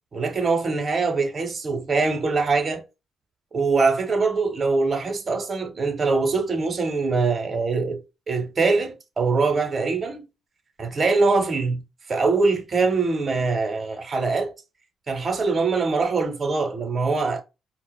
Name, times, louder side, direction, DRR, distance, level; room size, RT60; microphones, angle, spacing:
voice 1, 0.1-2.8 3.5-8.0 8.3-10.3 10.8-11.8 12.1-14.5 15.1-17.4, right 4 dB, 35° right, 0.7 m, -23 dB
4.4 x 2.0 x 2.2 m
cardioid pair, 90°, 0 cm